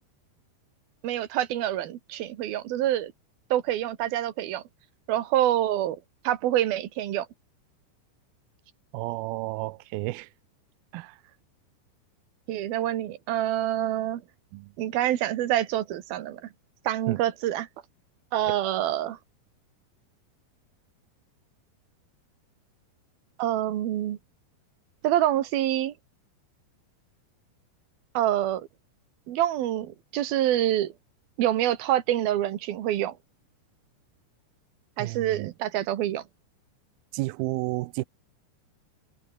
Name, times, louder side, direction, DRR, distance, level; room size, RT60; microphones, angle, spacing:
voice 1, 1.0-3.1 3.5-4.6 5.1-6.0 6.2-7.3 12.5-14.2 14.8-16.5 16.8-17.7 18.3-19.2 23.4-24.2 25.0-25.9 28.1-28.7 29.3-30.9 31.4-33.2 35.0-36.2, right 12 dB, 65° right, 3.2 m, -26 dB
voice 2, 8.9-10.3 10.9-11.2 14.5-14.7 17.1-17.2 18.5-18.6 35.0-35.5 37.1-38.0, right 20 dB, 80° right, 2.2 m, -32 dB
omnidirectional pair, 5.0 m